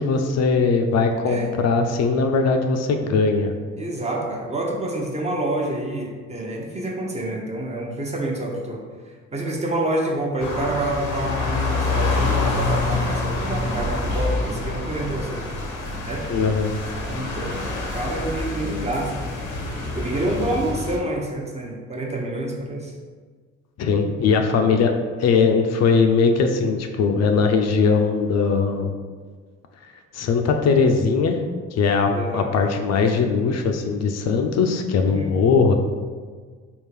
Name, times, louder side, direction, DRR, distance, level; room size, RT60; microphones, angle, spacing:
voice 1, 0.0-3.5 16.3-16.7 23.8-24.9 25.2-28.9 30.1-31.4 31.7-35.7, left 5 dB, 60° left, 5 dB, 0.4 m, -20 dB
voice 2, 3.8-8.8 9.3-15.4 16.0-16.3 17.1-17.7 17.9-19.1 19.9-22.9 32.1-32.5 35.1-35.5, right 1 dB, 20° right, 0 dB, 0.6 m, -27 dB
sound 1, 10.4-21.0, left 3 dB, 90° left, 0.7 m, -26 dB
3.6 x 2.4 x 3.2 m, 1.5 s
cardioid pair, 90°, 30 cm